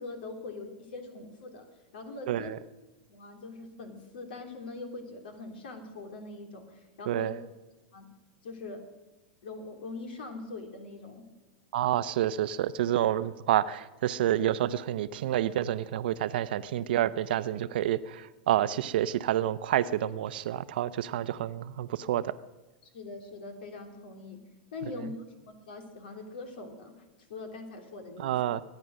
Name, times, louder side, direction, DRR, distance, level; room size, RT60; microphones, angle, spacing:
voice 1, 0.0-1.7 1.9-2.5 3.1-7.3 7.9-8.1 8.4-8.8 9.4-11.2 22.9-24.4 24.7-26.9 27.3-28.4, left 3 dB, 75° left, 5 dB, 3.2 m, -42 dB
voice 2, 2.3-2.6 7.1-7.4 11.7-22.3 28.2-28.6, right 12 dB, 70° right, 15 dB, 0.7 m, -28 dB
23.0 x 9.3 x 6.4 m, 1.1 s
hypercardioid pair, 110°, 5 cm